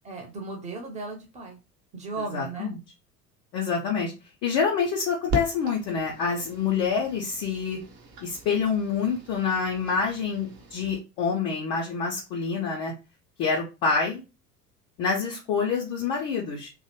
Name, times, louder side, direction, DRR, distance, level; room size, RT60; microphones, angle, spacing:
voice 1, 0.0-1.6 1.9-2.7, right 3 dB, 15° right, 2 dB, 0.6 m, -36 dB
voice 2, 2.2-2.8 3.5-4.1 4.4-7.8 8.2-12.9 13.4-14.2 15.0-16.7, left 5 dB, 25° left, -1 dB, 0.3 m, -27 dB
sound 1, 5.3-11.0, right 1 dB, 50° right, 0.9 m, -38 dB
2.7 x 2.0 x 2.8 m, 0.29 s
figure-of-eight pair, 75°, 47 cm